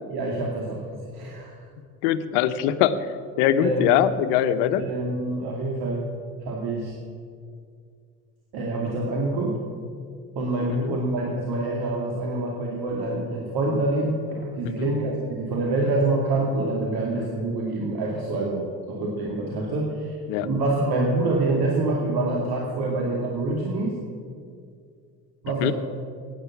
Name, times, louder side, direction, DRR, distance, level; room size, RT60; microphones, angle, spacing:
voice 1, 0.1-1.6 3.6-3.9 4.7-6.0 6.5-6.9 8.5-9.6 10.3-24.0 25.4-25.7, right 2 dB, 60° right, -1 dB, 2.6 m, -26 dB
voice 2, 2.0-3.0 3.4-4.9 10.8-11.0 14.8-14.9 20.3-20.5 25.6-25.7, left 11 dB, 70° left, 12 dB, 1.0 m, -22 dB
16.0 x 10.0 x 7.3 m, 2.3 s
hypercardioid pair, 70°, 43 cm